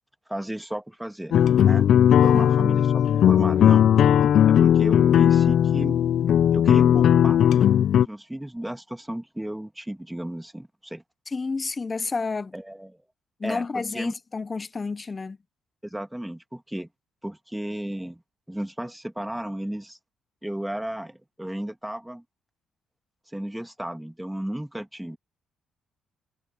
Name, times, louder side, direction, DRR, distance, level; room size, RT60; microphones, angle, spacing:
voice 1, 0.3-1.4 1.6-1.9 2.2-3.9 4.4-6.0 6.5-7.6 8.0-11.0 12.5-13.0 13.4-14.1 15.8-16.9 17.2-18.2 18.5-20.0 20.4-22.2 23.3-25.2, right 1 dB, 5° right, 2.0 m, -34 dB
sound 1, 1.3-8.0, left 10 dB, 65° left, 0.5 m, -17 dB
voice 2, 2.2-2.6 11.3-12.5 13.4-15.4, left 4 dB, 30° left, 0.8 m, -30 dB
cardioid pair, 90°, 0 cm